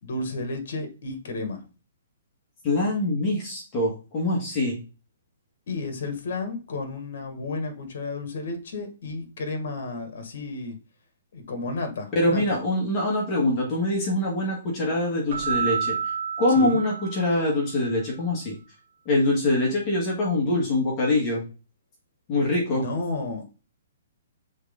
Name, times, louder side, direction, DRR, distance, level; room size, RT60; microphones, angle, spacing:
voice 1, 0.0-1.6 5.7-10.8 11.3-12.6 16.5-16.8 22.7-23.6, left 3 dB, 60° left, 7 dB, 1.7 m, -32 dB
voice 2, 2.6-4.8 12.1-15.9 16.4-18.5 19.0-21.4 22.3-22.8, left 2 dB, 20° left, -3 dB, 1.7 m, -24 dB
Keyboard (musical), 15.3-17.7, right 6 dB, 60° right, 1.9 m, -29 dB
6.4 x 4.0 x 3.7 m, 0.34 s
hypercardioid pair, 170°, 0 cm